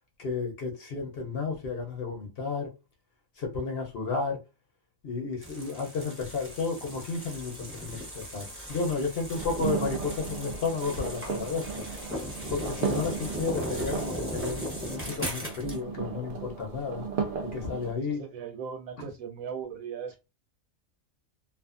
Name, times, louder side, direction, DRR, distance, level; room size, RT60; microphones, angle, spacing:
voice 1, 0.2-2.7 3.4-4.4 5.0-11.8 12.5-17.1 17.5-18.2, left 4 dB, 55° left, 0.8 m, -32 dB
sound 1, 5.4-15.8, equal, 15° right, 0.6 m, -37 dB
sound 2, 9.3-17.9, right 6 dB, 65° right, 0.5 m, -36 dB
voice 2, 18.1-20.2, right 7 dB, 85° right, 1.1 m, -38 dB
2.5 x 2.4 x 2.4 m
omnidirectional pair, 1.4 m